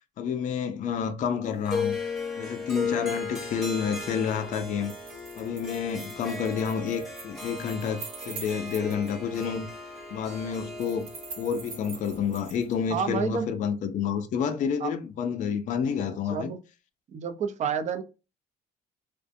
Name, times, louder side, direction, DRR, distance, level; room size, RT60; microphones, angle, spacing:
voice 1, 0.2-2.0 2.4-4.9 5.4-9.7 10.1-11.1 11.4-16.5, left 7 dB, 50° left, 0.4 m, -29 dB
Harp, 1.7-12.9, left 4 dB, ahead, 0.8 m, -36 dB
sound 1, 4.8-9.1 9.4-9.5 10.8-12.7, right 5 dB, 65° right, 1.0 m, -44 dB
voice 2, 12.9-13.5 14.8-14.9 16.3-16.6 17.1-18.0, right 6 dB, 45° right, 0.5 m, -29 dB
2.5 x 2.1 x 2.5 m
cardioid pair, 110°, 17 cm